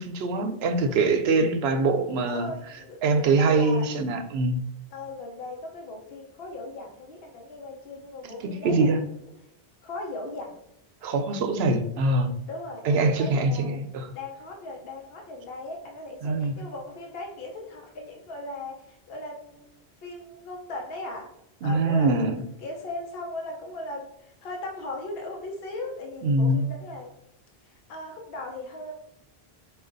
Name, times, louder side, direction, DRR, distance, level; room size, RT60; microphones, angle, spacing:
voice 1, 0.0-2.5 3.0-4.6 8.2-9.0 11.0-12.3 12.8-14.1 16.2-16.5 21.6-22.4 26.2-26.7, right 3 dB, 80° right, 7 dB, 0.8 m, -23 dB
voice 2, 2.3-3.9 4.9-9.1 9.8-10.6 12.5-13.8 14.1-19.7 20.0-21.3 21.6-27.1 27.7-28.9, left 2 dB, 70° left, 1 dB, 0.9 m, -38 dB
4.5 x 2.4 x 3.8 m, 0.82 s
omnidirectional pair, 1.1 m